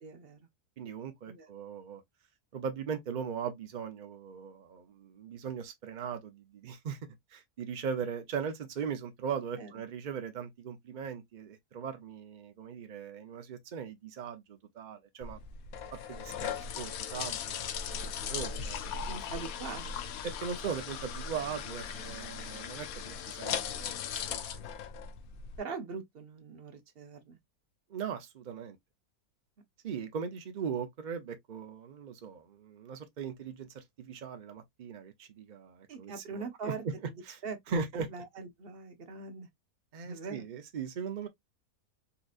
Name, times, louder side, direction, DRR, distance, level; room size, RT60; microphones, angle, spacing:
voice 1, 0.0-0.4 1.3-1.5 9.6-9.7 19.0-19.9 22.2-22.3 25.6-27.4 35.9-36.8 37.4-39.5 40.0-40.5, right 4 dB, 45° right, 0.8 m, -42 dB
voice 2, 0.8-2.0 2.5-7.0 7.3-15.4 15.9-19.1 20.2-24.6 27.9-28.8 29.8-36.7 37.3-37.4 37.7-38.1 39.9-41.3, right 6 dB, 75° right, 0.4 m, -39 dB
sound 1, 15.2-25.6, left 7 dB, 70° left, 1.0 m, -38 dB
4.2 x 2.6 x 2.4 m
omnidirectional pair, 1.7 m